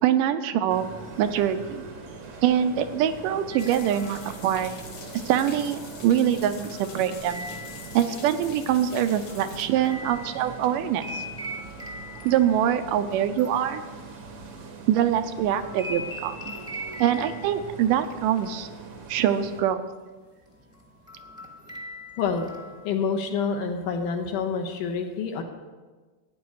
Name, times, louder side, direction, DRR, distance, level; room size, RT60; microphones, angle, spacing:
voice 1, 0.0-0.9 1.2-1.9 2.4-4.7 5.3-7.5 7.9-11.2 12.2-13.8 14.9-16.5 17.0-18.7 19.1-19.9, right 10 dB, 85° right, 9 dB, 2.2 m, -24 dB
sound 1, 0.7-19.6, right 4 dB, 60° right, 1.1 m, -42 dB
sound 2, 3.5-4.5 6.1-8.2 8.7-14.9 15.2-18.1 18.4-19.3 19.6-19.9 20.4-22.9, left 1 dB, 5° right, 0.9 m, -41 dB
sound 3, 3.6-9.7, left 5 dB, 55° left, 2.1 m, -45 dB
voice 2, 22.2-22.5 22.8-25.4, left 5 dB, 75° left, 4 dB, 2.6 m, -27 dB
14.0 x 9.6 x 4.7 m, 1.3 s
omnidirectional pair, 3.8 m